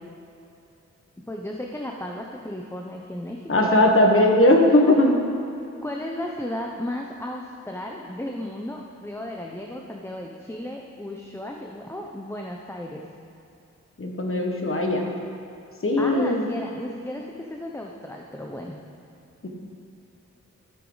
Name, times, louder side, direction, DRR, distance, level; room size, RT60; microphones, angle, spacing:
voice 1, 1.3-3.9 4.9-5.0 5.8-13.0 16.0-18.8, left 1 dB, 10° left, 0 dB, 0.7 m, -34 dB
voice 2, 3.5-5.1 14.0-15.0 15.8-16.5 19.4-19.5, left 1 dB, 45° left, 1 dB, 1.4 m, -19 dB
12.0 x 8.4 x 4.0 m, 2.7 s
wide cardioid pair, 75°, 29 cm